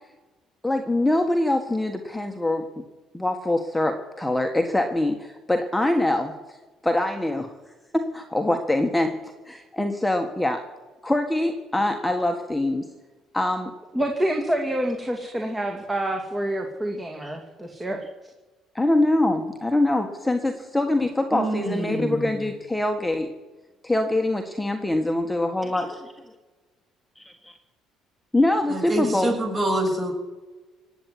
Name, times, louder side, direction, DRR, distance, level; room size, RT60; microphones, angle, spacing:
voice 1, 0.6-2.7 3.1-6.6 6.8-7.5 7.9-10.7 11.0-12.9 13.3-13.7 17.2-17.4 18.7-23.3 23.8-26.1 27.2-27.6 28.3-29.3, left 1 dB, 5° left, 3 dB, 1.6 m, -24 dB
voice 2, 13.9-18.0, right 1 dB, 15° right, 2 dB, 2.5 m, -27 dB
voice 3, 21.3-22.5 28.7-30.1, right 1 dB, 30° right, 2 dB, 7.0 m, -26 dB
17.5 x 8.3 x 9.5 m, 1.2 s
cardioid pair, 90°, 0 cm